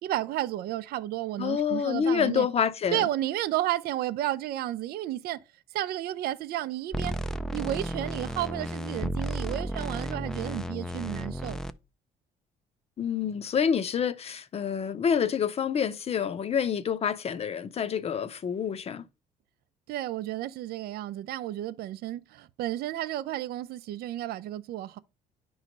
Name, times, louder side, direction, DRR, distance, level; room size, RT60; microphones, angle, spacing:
voice 1, 0.0-2.5 2.9-5.4 5.7-7.1 7.5-11.6 19.9-25.0, right 14 dB, 65° right, 0.5 m, -32 dB
voice 2, 1.4-3.1 13.0-19.0, left 7 dB, 35° left, 0.7 m, -27 dB
sound 1, 6.9-11.7, equal, 5° left, 0.4 m, -33 dB
9.3 x 3.2 x 5.2 m
cardioid pair, 110°, 17 cm